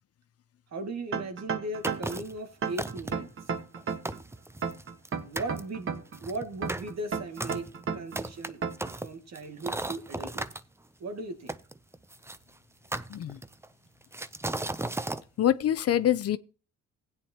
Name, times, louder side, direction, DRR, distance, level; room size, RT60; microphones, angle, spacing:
voice 1, 0.7-3.3 5.2-7.7 7.9-8.6 9.0-10.4 11.0-11.6, right 2 dB, 60° right, 2.1 m, -37 dB
sound 1, 1.1-2.2 2.6-4.2 4.6-6.2 6.6-8.2 8.6-8.9, right 6 dB, 45° right, 1.4 m, -32 dB
sound 2, 1.8-2.4 2.8-3.3 3.8-3.9 4.1-5.1 5.4-5.6 6.1-10.6 11.5-12.4 12.9-13.7 14.1-15.2, right 2 dB, 10° right, 0.5 m, -35 dB
voice 2, 15.4-16.4, left 11 dB, 55° left, 0.6 m, -25 dB
16.0 x 8.9 x 2.9 m
cardioid pair, 90°, 30 cm